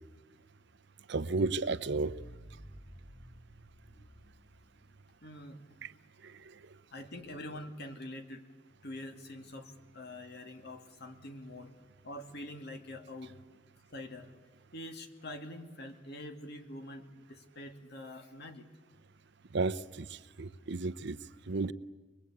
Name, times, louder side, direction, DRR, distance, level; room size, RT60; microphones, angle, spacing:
voice 1, 1.1-2.2 5.8-5.9 19.5-20.1 20.4-21.2 21.5-21.7, right 3 dB, 65° right, 0.8 m, -32 dB
sound 1, 2.1-5.2, equal, 15° left, 1.8 m, -53 dB
voice 2, 5.2-5.9 6.9-8.5 8.8-11.7 12.0-13.3 13.9-14.3 14.7-18.7, left 1 dB, 60° left, 2.4 m, -45 dB
25.0 x 21.5 x 8.6 m
head